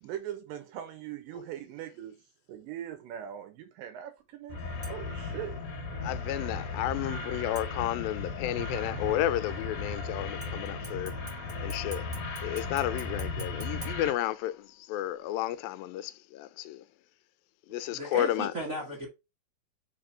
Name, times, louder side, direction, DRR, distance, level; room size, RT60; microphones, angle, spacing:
voice 1, 0.0-2.2 2.5-4.6 4.9-5.6, right 10 dB, 80° right, 2.3 m, -40 dB
sound 1, 4.5-14.1, left 3 dB, 65° left, 2.0 m, -36 dB
sound 2, 4.8-5.3 7.5-8.3 10.4-14.8 15.2-15.3, right 2 dB, 15° right, 0.5 m, -49 dB
voice 2, 6.0-11.2 11.6-12.1 12.4-16.9 17.7-18.5, left 13 dB, 85° left, 2.3 m, -32 dB
voice 3, 17.9-19.1, right 1 dB, 40° right, 1.1 m, -35 dB
4.8 x 4.4 x 4.8 m
omnidirectional pair, 4.1 m